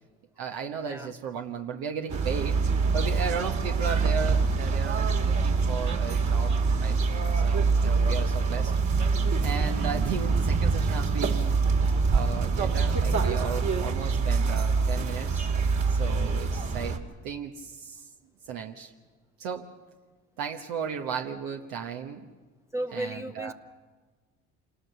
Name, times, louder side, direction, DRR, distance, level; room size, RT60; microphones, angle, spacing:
voice 1, 0.4-2.6 2.9-6.5 6.8-7.0 7.3-8.7 9.4-11.5 12.1-15.5 15.9-18.1 18.5-18.9 19.4-19.7 20.4-22.3 22.9-23.5, right 6 dB, 80° right, 3 dB, 1.3 m, -35 dB
sound 1, 2.1-17.0, right 4 dB, 50° right, 2.6 m, -25 dB
voice 2, 22.7-23.5, right 1 dB, 10° right, 5 dB, 0.7 m, -34 dB
27.0 x 19.0 x 6.9 m, 1.4 s
supercardioid pair, 65°, 35 cm